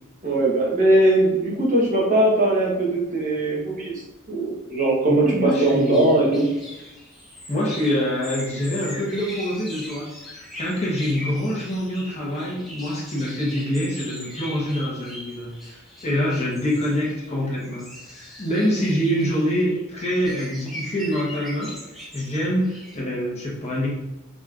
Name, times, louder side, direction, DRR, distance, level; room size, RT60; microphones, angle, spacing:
voice 1, 0.2-3.9 4.3-6.5, right 1 dB, 40° right, -4 dB, 1.1 m, -20 dB
voice 2, 5.1-6.2 7.5-10.1 10.6-21.7 22.1-23.9, equal, 30° left, -4 dB, 1.1 m, -25 dB
sound 1, 5.5-23.0, left 1 dB, ahead, 1.1 m, -40 dB
5.1 x 3.0 x 2.5 m, 0.94 s
head